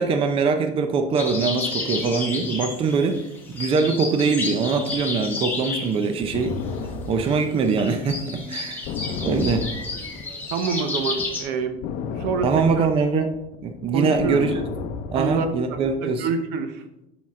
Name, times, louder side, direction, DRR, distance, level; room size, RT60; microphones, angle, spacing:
voice 1, 0.0-3.2 3.5-6.6 7.1-8.9 9.2-9.7 12.4-13.3 13.6-14.5 15.1-16.3, right 4 dB, 35° right, 7 dB, 0.7 m, -22 dB
sound 1, 1.2-11.4, left 3 dB, 10° left, 1.9 m, -32 dB
sound 2, 6.3-10.7 11.0-15.9, left 5 dB, 55° left, 0.7 m, -32 dB
voice 2, 10.5-11.8 12.1-12.9 13.9-14.4 15.1-16.8, right 5 dB, 70° right, 8 dB, 0.9 m, -27 dB
7.4 x 6.2 x 3.7 m, 0.90 s
cardioid pair, 145°, 16 cm